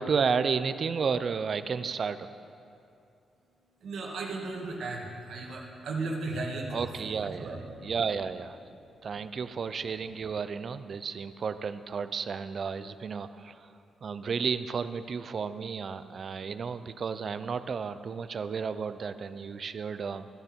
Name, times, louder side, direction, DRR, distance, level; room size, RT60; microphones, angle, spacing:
voice 1, 0.0-2.3 6.7-7.5 7.8-8.6 9.0-13.7 14.0-20.3, right 5 dB, 45° right, 12 dB, 0.5 m, -32 dB
voice 2, 3.8-6.9 7.2-7.9 8.7-9.1 9.6-9.7, right 3 dB, 65° right, 0 dB, 1.8 m, -36 dB
14.5 x 10.5 x 4.4 m, 2.7 s
cardioid pair, 130°, 0 cm